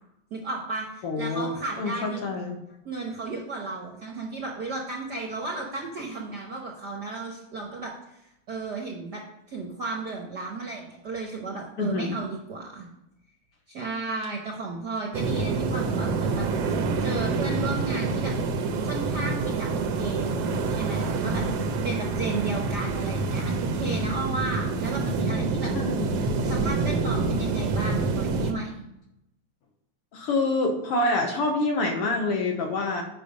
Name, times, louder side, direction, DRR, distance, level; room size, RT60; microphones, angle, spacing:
voice 1, 0.3-2.3 2.8-8.2 8.5-9.2 9.5-12.9 13.7-18.3 18.8-25.7 26.4-28.9, right 3 dB, 50° right, -1 dB, 1.3 m, -34 dB
voice 2, 1.0-2.6 11.8-12.2 25.7-26.1 30.1-33.0, left 2 dB, 60° left, 2 dB, 1.7 m, -27 dB
sound 1, 15.1-28.5, right 3 dB, 70° right, 1.7 m, -27 dB
8.5 x 5.6 x 5.2 m, 0.86 s
omnidirectional pair, 3.3 m